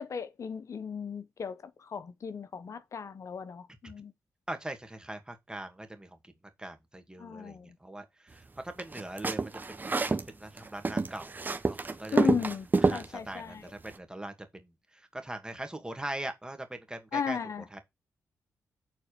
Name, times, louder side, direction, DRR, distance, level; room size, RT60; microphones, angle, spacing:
voice 1, 0.0-4.1 7.2-7.7 12.1-13.6 17.1-17.6, left 7 dB, 55° left, 1.0 m, -36 dB
voice 2, 4.5-6.2 6.6-11.3 11.7-12.2 12.8-14.7 15.1-17.4 17.7-17.8, right 1 dB, 15° right, 2.3 m, -41 dB
sound 1, 8.8-10.3 10.6-13.0, right 3 dB, 30° right, 1.3 m, -28 dB
7.6 x 4.2 x 6.7 m
cardioid pair, 60°, 6 cm